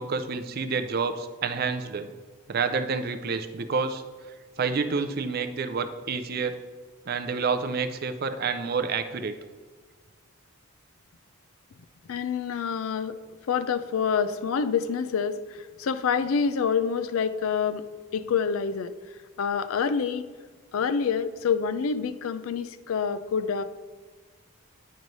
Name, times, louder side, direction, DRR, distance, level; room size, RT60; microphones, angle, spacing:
voice 1, 0.0-2.1 2.5-4.0 4.6-6.6 7.1-9.3, right 5 dB, 45° right, 9 dB, 0.4 m, -28 dB
voice 2, 12.1-13.2 13.5-17.8 18.1-18.9 19.4-20.3 20.7-23.6, left 6 dB, 70° left, 12 dB, 0.4 m, -27 dB
9.0 x 3.1 x 5.2 m, 1.4 s
head